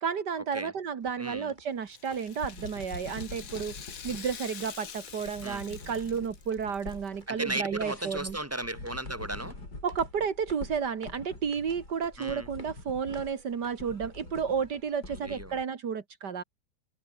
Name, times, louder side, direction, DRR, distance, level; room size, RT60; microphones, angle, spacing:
voice 1, 0.0-3.8 4.0-8.4 9.8-16.4, right 6 dB, 80° right, 2.4 m, -32 dB
sound 1, 1.0-15.1, right 1 dB, 25° right, 6.2 m, -57 dB
voice 2, 1.2-1.5 5.4-5.6 7.3-9.6 12.2-12.5 15.1-15.6, right 1 dB, 10° right, 4.3 m, -36 dB
Rattle (instrument), 1.8-7.1 7.4-7.5 8.3-8.4, left 7 dB, 55° left, 1.7 m, -46 dB
sound 2, 2.4-15.6, left 2 dB, 75° left, 7.3 m, -45 dB
omnidirectional pair, 1.8 m